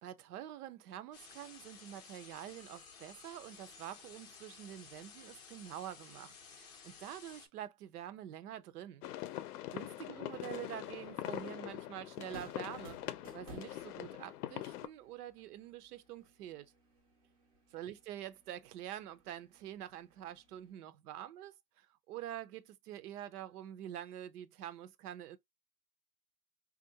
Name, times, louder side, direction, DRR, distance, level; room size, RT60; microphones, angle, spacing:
voice 1, 0.0-9.0 9.7-13.0 13.3-16.7 17.7-25.4, right 11 dB, 75° right, 0.6 m, -46 dB
sound 1, 1.1-7.5, left 6 dB, 30° left, 0.5 m, -55 dB
sound 2, 9.0-14.9, left 14 dB, 75° left, 0.6 m, -43 dB
sound 3, 10.2-20.7, right 2 dB, 25° right, 0.4 m, -59 dB
3.5 x 2.5 x 2.7 m
supercardioid pair, 175°, 46 cm